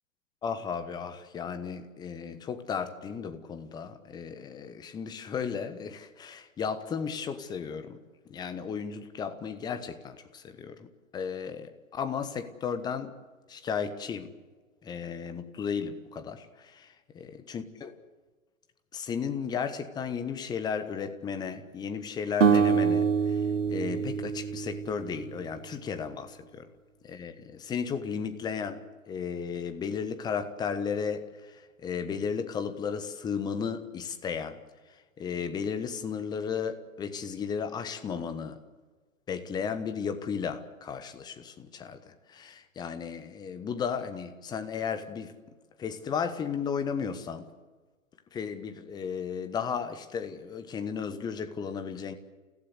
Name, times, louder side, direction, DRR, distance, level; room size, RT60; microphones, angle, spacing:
voice 1, 0.4-8.0 8.3-13.1 13.5-14.3 14.8-17.9 18.9-26.7 27.0-34.6 35.2-38.6 39.3-45.3 45.8-47.5 48.3-52.1, left 6 dB, 10° left, 1.2 m, -34 dB
sound 1, 22.4-25.6, right 6 dB, 65° right, 1.5 m, -26 dB
29.5 x 16.0 x 8.2 m
figure-of-eight pair, 125°, 40 cm